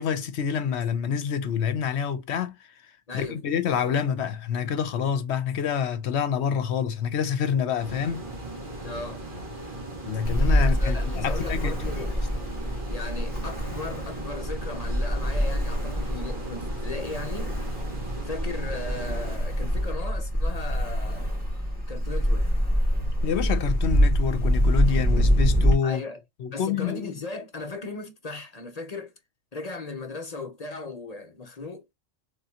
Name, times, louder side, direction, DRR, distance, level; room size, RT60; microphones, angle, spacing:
voice 1, 0.0-2.5 3.1-8.2 10.0-11.9 23.2-26.0 26.4-27.1, left 7 dB, 65° left, 1.0 m, -27 dB
voice 2, 3.1-3.4 8.8-9.2 10.5-12.1 12.9-17.6 18.2-21.3 21.9-22.5 25.8-26.2 26.5-29.1 29.5-31.8, left 3 dB, 40° left, 0.7 m, -37 dB
sound 1, 7.8-19.4, right 1 dB, 45° right, 1.7 m, -38 dB
Ocean, 10.2-25.7, equal, 5° right, 2.3 m, -25 dB
3.7 x 3.6 x 2.8 m
omnidirectional pair, 1.2 m